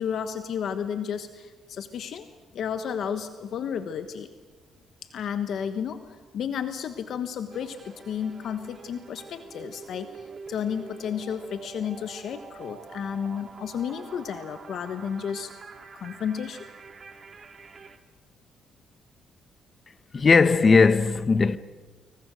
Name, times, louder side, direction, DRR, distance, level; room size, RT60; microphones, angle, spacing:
voice 1, 0.0-2.3 2.5-4.3 5.1-6.0 6.3-15.5 16.0-16.6, left 8 dB, 65° left, 1.3 m, -32 dB
sound 1, 7.5-18.0, right 4 dB, 40° right, 2.0 m, -46 dB
voice 2, 20.1-21.6, left 4 dB, 35° left, 1.1 m, -18 dB
26.5 x 23.0 x 6.4 m
cardioid pair, 90°, 0 cm